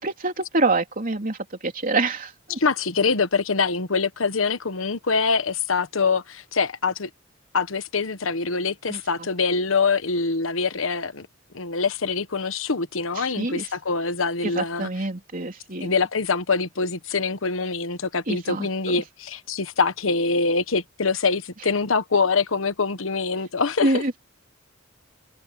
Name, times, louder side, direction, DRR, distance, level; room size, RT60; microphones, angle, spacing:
voice 1, 0.0-2.6 8.9-9.3 13.2-13.7 14.4-15.9 18.3-19.0 23.8-24.2, right 2 dB, 45° right, 3.5 m, -26 dB
voice 2, 2.6-7.1 7.5-11.3 11.5-14.9 15.8-24.0, left 4 dB, 90° left, 1.2 m, -24 dB
head